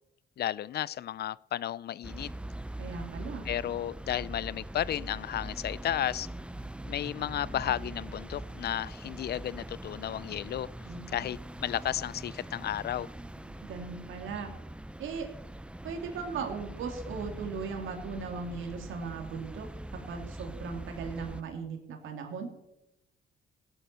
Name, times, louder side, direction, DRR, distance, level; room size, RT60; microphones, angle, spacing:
voice 1, 0.4-2.3 3.5-6.3 6.9-10.7 11.1-13.1, left 11 dB, 55° left, 0.5 m, -33 dB
sound 1, 2.0-21.4, right 1 dB, 5° right, 0.6 m, -42 dB
voice 2, 2.8-3.4 10.8-11.3 13.6-14.5 15.0-15.3 15.8-19.7 20.1-22.5, right 5 dB, 80° right, 2.9 m, -38 dB
16.5 x 9.9 x 6.8 m
cardioid pair, 90°, 20 cm